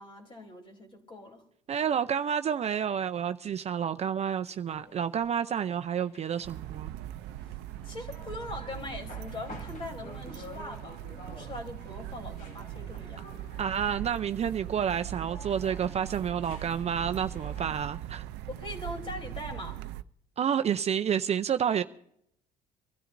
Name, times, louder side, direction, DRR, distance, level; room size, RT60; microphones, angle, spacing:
voice 1, 0.0-1.4 7.8-13.5 18.5-19.8 21.7-21.8, left 2 dB, 30° left, 3.4 m, -42 dB
voice 2, 1.7-6.9 13.6-18.2 20.4-21.8, right 8 dB, 40° right, 0.5 m, -29 dB
sound 1, 4.7-17.9, left 2 dB, 50° left, 2.8 m, -51 dB
sound 2, 6.4-20.0, right 13 dB, 90° right, 0.5 m, -40 dB
24.0 x 13.0 x 2.6 m
cardioid pair, 110°, 17 cm